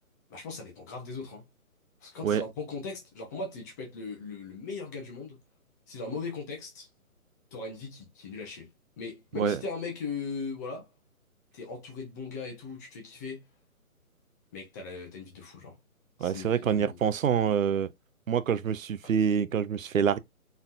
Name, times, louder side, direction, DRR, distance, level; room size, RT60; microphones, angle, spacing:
voice 1, 0.3-1.5 2.0-5.4 5.9-6.9 7.5-8.7 9.0-10.9 11.5-13.4 14.5-15.7 16.2-17.0, left 4 dB, 10° left, 0.8 m, -39 dB
voice 2, 16.2-17.9 18.3-20.2, right 7 dB, 65° right, 0.6 m, -26 dB
4.1 x 4.0 x 2.5 m
figure-of-eight pair, 150°, 43 cm